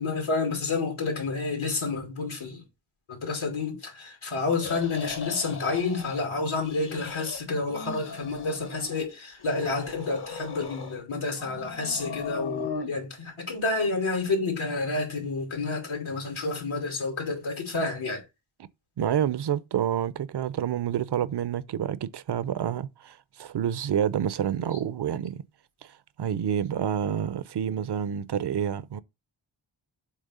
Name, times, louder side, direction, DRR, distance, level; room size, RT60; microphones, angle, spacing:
voice 1, 0.0-2.6 3.1-18.2, left 3 dB, 80° left, 2.5 m, -29 dB
sound 1, 4.6-6.2 6.5-7.4 7.7-9.1 9.4-11.0 11.4-12.9, left 5 dB, 55° left, 1.4 m, -38 dB
voice 2, 19.0-25.4 26.2-29.0, right 9 dB, 60° right, 0.6 m, -28 dB
7.5 x 3.2 x 5.4 m
wide cardioid pair, 125°, 47 cm